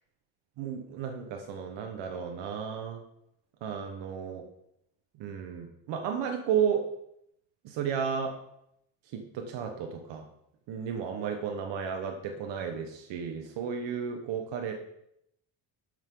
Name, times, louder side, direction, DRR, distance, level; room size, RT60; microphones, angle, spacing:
voice 1, 0.6-3.0 3.6-4.4 5.2-6.8 7.6-8.3 9.1-10.2 10.7-14.7, right 7 dB, 80° right, 3 dB, 1.5 m, -33 dB
12.5 x 10.5 x 3.9 m, 0.77 s
cardioid pair, 170°, 42 cm